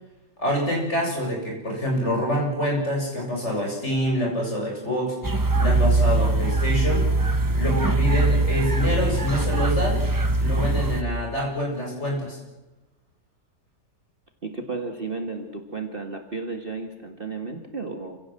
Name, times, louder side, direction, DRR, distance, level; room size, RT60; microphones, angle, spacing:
voice 1, 0.4-5.1 5.6-7.1 7.5-10.0 10.4-12.4, equal, 40° left, -1 dB, 7.8 m, -26 dB
sound 1, 5.2-11.0, right 2 dB, 15° right, 1.1 m, -22 dB
voice 2, 14.4-18.2, right 3 dB, 35° right, 5 dB, 1.9 m, -33 dB
29.0 x 16.5 x 7.8 m, 1.0 s
omnidirectional pair, 1.8 m